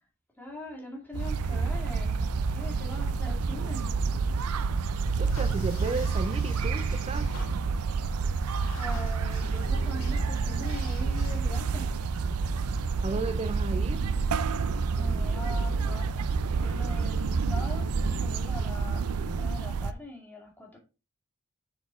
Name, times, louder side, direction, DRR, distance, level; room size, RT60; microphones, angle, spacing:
voice 1, 0.3-2.2 2.5-3.9 8.3-8.5 8.7-11.9 14.6-20.8, left 1 dB, 10° left, 2.4 m, -42 dB
sound 1, 1.1-19.9, right 4 dB, 90° right, 0.5 m, -28 dB
voice 2, 5.2-7.3 13.0-14.0, right 3 dB, 25° right, 0.4 m, -34 dB
sound 2, 5.3-11.4, left 3 dB, 70° left, 1.9 m, -48 dB
6.8 x 4.4 x 4.4 m
head